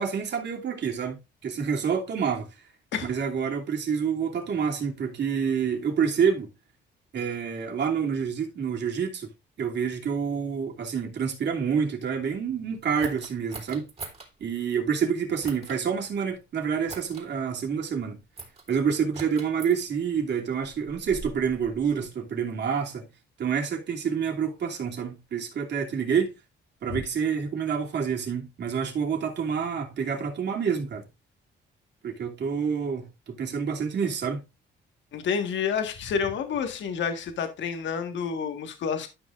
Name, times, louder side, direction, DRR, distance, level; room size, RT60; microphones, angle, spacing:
voice 1, 0.0-2.5 3.0-6.5 7.1-9.3 9.6-13.9 14.4-18.2 18.7-23.1 23.4-26.3 26.8-31.1 32.0-34.4, right 6 dB, 60° right, 2.8 m, -28 dB
sound 1, 13.0-14.3 15.4-15.8 16.9-17.3 18.4-18.7 19.1-19.7 20.6-22.1, right 3 dB, 30° right, 3.5 m, -41 dB
voice 2, 35.1-39.1, left 6 dB, 70° left, 1.7 m, -29 dB
12.5 x 6.1 x 2.5 m
cardioid pair, 90°, 20 cm